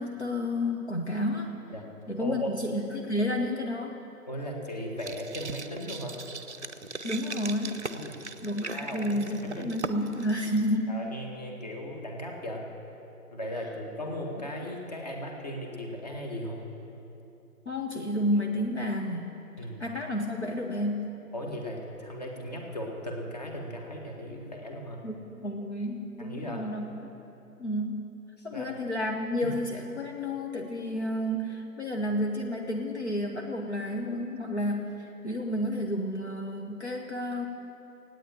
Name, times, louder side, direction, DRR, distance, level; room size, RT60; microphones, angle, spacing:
voice 1, 0.0-1.6 2.1-4.0 7.0-7.9 8.4-10.9 17.6-21.2 25.0-26.9 27.6-28.0 28.4-37.5, left 1 dB, 45° left, 0 dB, 1.2 m, -31 dB
voice 2, 2.2-2.5 4.3-6.2 7.9-8.1 8.7-9.7 10.9-12.6 13.3-16.7 19.6-19.8 21.3-25.0 26.2-26.6 28.4-28.7 29.4-29.5, equal, 25° left, 1 dB, 1.5 m, -37 dB
sound 1, 5.0-10.8, right 3 dB, 45° right, 0.8 m, -39 dB
17.0 x 9.2 x 8.9 m, 2.9 s
figure-of-eight pair, 155°, 47 cm